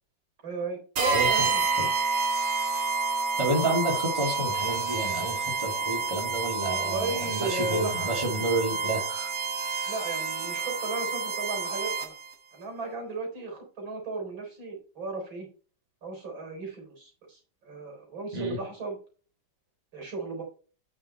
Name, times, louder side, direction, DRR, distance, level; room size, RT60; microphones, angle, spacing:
voice 1, 0.4-1.7 6.8-8.1 8.7-8.9 9.9-12.1 12.5-15.5 16.0-19.0 19.9-20.4, right 3 dB, 85° right, 1 dB, 4.5 m, -35 dB
sound 1, 0.9-12.3, right 4 dB, 50° right, 1.7 m, -29 dB
voice 2, 1.1-1.5 1.8-1.9 3.4-9.3 18.3-18.6, right 1 dB, 15° right, 0 dB, 2.6 m, -30 dB
9.2 x 6.1 x 4.3 m, 0.39 s
omnidirectional pair, 2.1 m